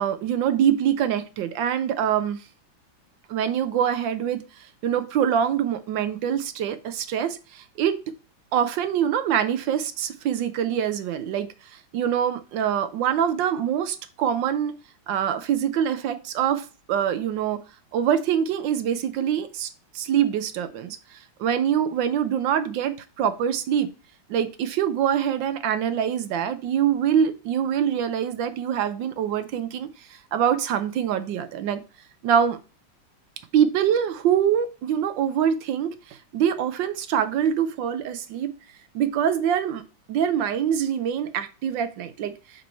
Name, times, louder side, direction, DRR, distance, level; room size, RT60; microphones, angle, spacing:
voice 1, 0.0-2.4 3.3-4.4 4.8-8.0 8.5-14.7 15.1-17.6 17.9-19.7 19.9-23.9 24.3-31.8 32.2-32.6 33.5-38.5 38.9-39.8 40.1-42.3, right 9 dB, 75° right, 1.2 m, -24 dB
5.2 x 4.4 x 4.4 m
omnidirectional pair, 2.2 m